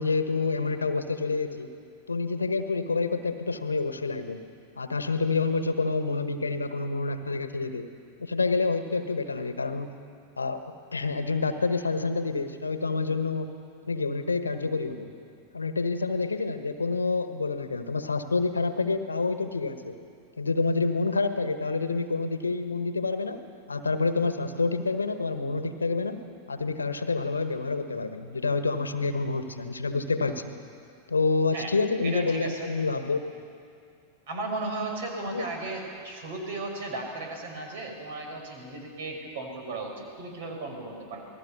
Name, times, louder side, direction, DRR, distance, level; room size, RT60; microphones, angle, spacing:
voice 1, 0.0-1.7 2.1-4.4 4.8-7.9 8.2-9.9 10.4-10.6 10.9-13.5 13.8-15.1 15.5-20.0 20.4-23.4 23.7-26.2 26.5-30.5 31.1-33.2 35.3-35.4, left 3 dB, 75° left, 9 dB, 1.4 m, -28 dB
voice 2, 32.0-32.7 34.3-41.3, right 2 dB, 55° right, 3 dB, 5.6 m, -35 dB
27.5 x 19.5 x 6.9 m, 2.3 s
figure-of-eight pair, 90°, 0 cm